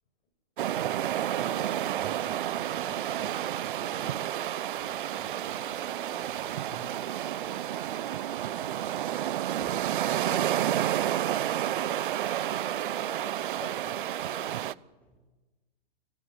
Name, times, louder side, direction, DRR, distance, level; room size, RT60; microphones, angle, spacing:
voice 1, 0.6-4.2 4.8-7.3 9.6-10.0 15.0-15.3, equal, 5° left, 1 dB, 3.1 m, -50 dB
sound 1, 0.6-14.7, right 12 dB, 60° right, 0.8 m, -30 dB
sound 2, 1.3-13.7, left 2 dB, 90° left, 5.5 m, -52 dB
voice 2, 9.0-9.4 10.0-10.5 10.9-14.7, left 6 dB, 40° left, 6 dB, 7.2 m, -50 dB
29.0 x 18.0 x 7.9 m, 1.2 s
hypercardioid pair, 140°, 30 cm